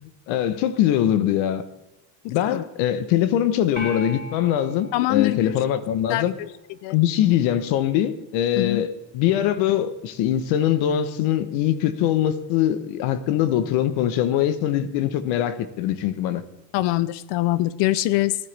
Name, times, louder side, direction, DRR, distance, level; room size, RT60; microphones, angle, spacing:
voice 1, 0.0-1.6 2.3-6.3 6.9-16.4, left 11 dB, 85° left, 1.2 m, -22 dB
voice 2, 2.2-2.6 4.9-5.5 6.1-6.5 6.8-7.0 8.6-8.8 16.7-18.4, left 17 dB, 65° left, 0.7 m, -23 dB
sound 1, 3.8-6.2, left 2 dB, 20° left, 4.4 m, -38 dB
16.5 x 11.0 x 3.4 m
cardioid pair, 170°, 46 cm